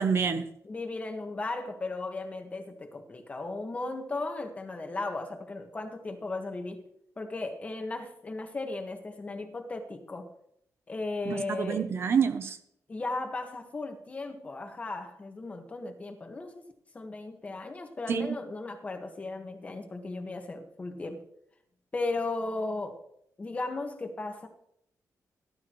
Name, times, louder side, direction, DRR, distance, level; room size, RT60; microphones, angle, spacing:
voice 1, 0.0-0.4 11.3-12.6 18.1-18.3, right 6 dB, 40° right, 0.8 m, -27 dB
voice 2, 0.6-6.8 7.2-10.3 10.9-11.9 12.9-16.7 16.9-21.2 21.9-23.0 23.4-24.5, left 2 dB, 25° left, 1.6 m, -36 dB
18.0 x 12.0 x 3.1 m
wide cardioid pair, 175°, 6 cm